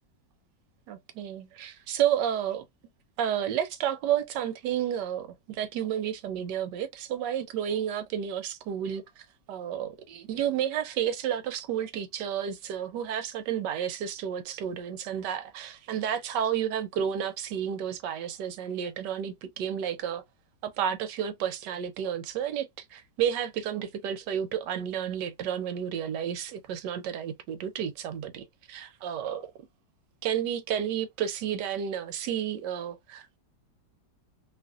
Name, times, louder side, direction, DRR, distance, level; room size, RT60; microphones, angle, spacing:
voice 1, 0.9-2.6 3.2-20.2 20.6-29.5 30.2-33.4, right 9 dB, 75° right, 1.1 m, -31 dB
3.0 x 2.5 x 2.3 m
omnidirectional pair, 2.0 m